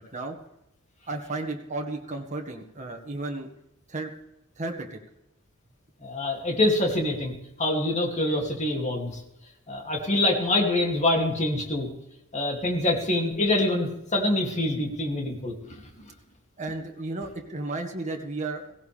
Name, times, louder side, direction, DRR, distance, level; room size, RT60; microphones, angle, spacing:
voice 1, 1.1-3.5 3.9-4.1 4.6-5.0 16.6-18.7, right 2 dB, 35° right, 2 dB, 1.8 m, -33 dB
voice 2, 6.0-9.2 9.7-11.9 12.3-15.8, left 2 dB, 35° left, 1 dB, 2.7 m, -25 dB
17.0 x 17.0 x 3.5 m, 0.88 s
head